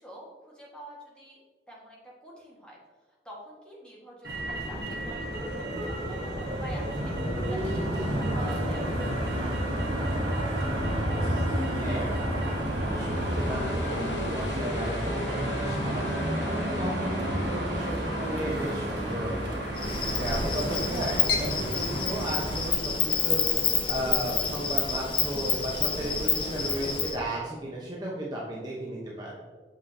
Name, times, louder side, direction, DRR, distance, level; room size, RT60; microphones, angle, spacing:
voice 1, 0.0-1.4 1.7-2.8 3.2-7.1 7.4-10.3, equal, 5° left, -5 dB, 1.5 m, -47 dB
Motor vehicle (road), 4.2-22.7, right 1 dB, 70° right, 1.4 m, -30 dB
sound 1, 10.4-22.0, left 3 dB, 85° left, 0.8 m, -37 dB
voice 2, 11.7-12.2 12.8-19.6 20.2-29.3, right 1 dB, 25° right, -4 dB, 0.9 m, -35 dB
Insect, 19.8-27.2, left 6 dB, 30° left, 0.6 m, -28 dB
7.1 x 6.1 x 2.8 m, 1.4 s
head